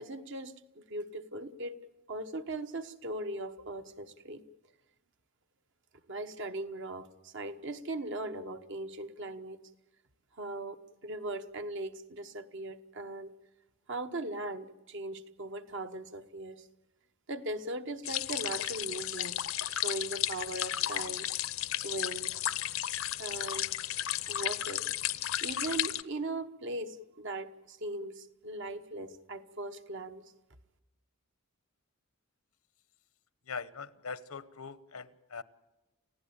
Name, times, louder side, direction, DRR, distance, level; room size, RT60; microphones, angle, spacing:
voice 1, 0.0-1.8 2.1-4.4 6.1-9.6 10.3-13.3 13.9-16.7 17.3-19.4 19.7-21.3 21.8-22.3 23.2-23.7 24.3-24.9 25.4-30.2, right 2 dB, 55° right, 8 dB, 1.2 m, -39 dB
sound 1, 18.0-26.0, left 12 dB, 70° left, 0.7 m, -34 dB
voice 2, 33.5-35.4, left 5 dB, 85° left, 15 dB, 1.0 m, -42 dB
29.0 x 16.0 x 8.7 m, 1.1 s
head